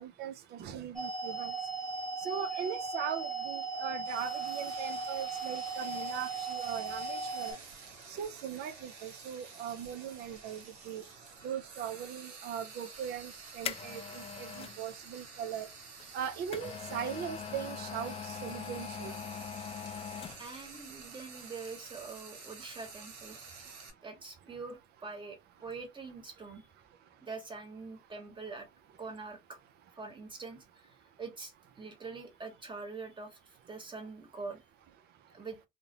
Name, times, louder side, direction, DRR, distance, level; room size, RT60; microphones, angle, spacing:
voice 1, 0.0-1.5 2.2-7.6 8.2-11.0 11.4-15.7 16.1-19.1, right 8 dB, 60° right, 0.5 m, -39 dB
sound 1, 1.0-7.5, right 3 dB, 5° left, 1.2 m, -37 dB
Frying (food), 4.0-23.9, right 4 dB, 80° right, 0.8 m, -50 dB
sound 2, 13.0-14.8 16.0-20.7 21.0-21.1, left 8 dB, 30° left, 0.4 m, -42 dB
voice 2, 20.4-23.4 24.0-26.7 27.2-28.7 29.0-29.6 29.9-30.9 31.2-31.5 31.8-33.4 33.7-34.6 35.3-35.6, right 4 dB, 25° right, 1.2 m, -44 dB
2.5 x 2.1 x 2.8 m
hypercardioid pair, 70°, 20 cm